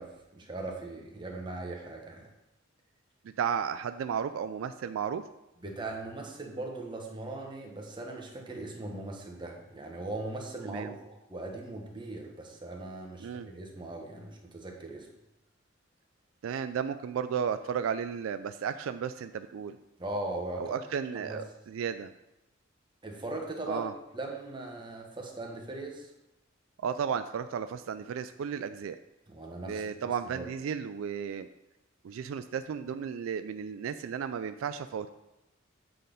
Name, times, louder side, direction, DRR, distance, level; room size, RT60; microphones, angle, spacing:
voice 1, 0.0-2.3 5.6-15.1 20.0-20.8 21.1-21.4 23.0-23.9 24.1-26.1 29.3-30.5, right 2 dB, 25° right, 0 dB, 1.1 m, -39 dB
voice 2, 3.4-5.2 10.6-11.0 13.2-13.5 16.4-19.8 20.6-22.1 23.7-23.9 26.8-29.0 29.6-31.5 32.0-35.1, right 7 dB, 80° right, 11 dB, 0.3 m, -34 dB
7.6 x 4.1 x 5.1 m, 0.92 s
head